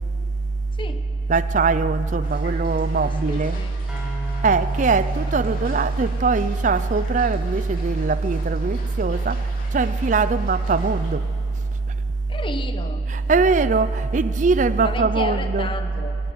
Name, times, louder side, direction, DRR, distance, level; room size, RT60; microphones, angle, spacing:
voice 1, 1.3-3.6 4.4-9.4 9.7-11.2 13.1-15.7, right 4 dB, 45° right, 0.4 m, -21 dB
sound 1, 2.2-11.1, left 2 dB, 50° left, 3.1 m, -45 dB
voice 2, 3.0-3.7 12.3-13.0 14.8-16.2, left 2 dB, 30° left, 1.2 m, -32 dB
sound 2, 3.9-7.5, right 1 dB, 5° right, 2.7 m, -37 dB
21.5 x 18.5 x 9.4 m
head